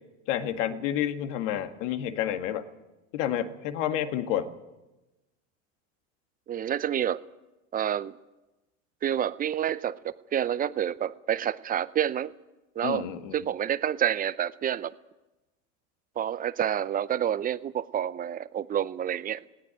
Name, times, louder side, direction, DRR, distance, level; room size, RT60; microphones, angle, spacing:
voice 1, 0.3-2.6 3.1-4.5 12.8-13.4, left 10 dB, 65° left, 8 dB, 1.9 m, -29 dB
voice 2, 6.5-7.2 7.7-8.2 9.0-12.3 12.8-13.0 13.3-14.9 16.2-19.5, right 10 dB, 20° right, 16 dB, 0.6 m, -28 dB
18.5 x 17.0 x 8.9 m, 1.0 s
supercardioid pair, 120°, 40 cm